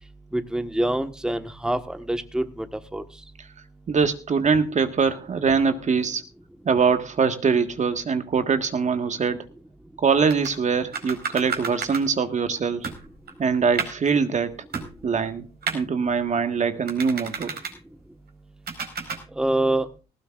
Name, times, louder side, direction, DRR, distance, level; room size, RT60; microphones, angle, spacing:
voice 1, 0.3-3.0 19.3-19.9, right 1 dB, 5° right, 8 dB, 1.4 m, -25 dB
voice 2, 3.9-6.2 6.6-9.5 10.0-12.9 13.4-14.6 15.0-15.5 15.7-17.5, right 5 dB, 40° right, 8 dB, 1.6 m, -23 dB
sound 1, 10.3-10.5 10.9-12.0 12.6-12.7 12.8-14.1 14.7-15.3 15.6-15.8 16.9-17.7 18.7-19.2, right 5 dB, 55° right, 4.7 m, -31 dB
18.5 x 15.5 x 2.5 m, 0.32 s
supercardioid pair, 85°, 19 cm